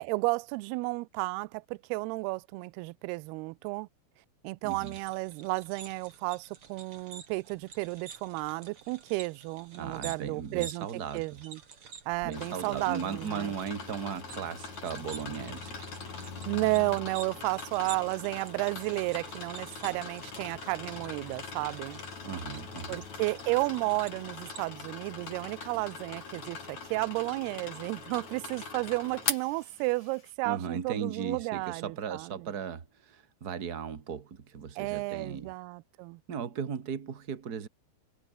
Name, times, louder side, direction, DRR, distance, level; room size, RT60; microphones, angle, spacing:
voice 1, 0.0-3.9 4.4-10.9 11.1-11.6 12.1-13.5 16.5-22.0 22.9-32.5 34.8-36.2, right 25 dB, 80° right, 2.4 m, -32 dB
voice 2, 4.6-4.9 9.8-11.2 12.2-15.8 22.2-23.0 30.4-35.5 36.3-37.7, right 7 dB, 65° right, 0.9 m, -37 dB
sound 1, 4.7-24.6, right 6 dB, 35° right, 3.0 m, -50 dB
sound 2, 12.3-30.3, left 5 dB, 40° left, 5.7 m, -41 dB
omnidirectional pair, 4.9 m